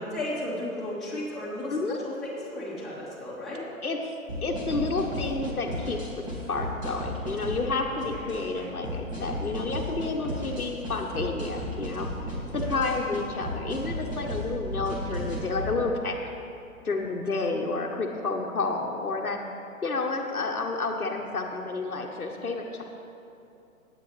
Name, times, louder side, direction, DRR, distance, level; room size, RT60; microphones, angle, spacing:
voice 1, 0.0-1.8 2.0-3.6, left 1 dB, ahead, -11 dB, 2.8 m, -34 dB
voice 2, 3.8-4.1 4.4-12.1 12.5-16.1 16.8-19.4 19.8-22.8, left 3 dB, 90° left, 1 dB, 1.1 m, -30 dB
sound 1, 4.3-15.7, equal, 20° right, 2.2 m, -34 dB
18.0 x 8.4 x 3.3 m, 2.7 s
figure-of-eight pair, 130°, 42 cm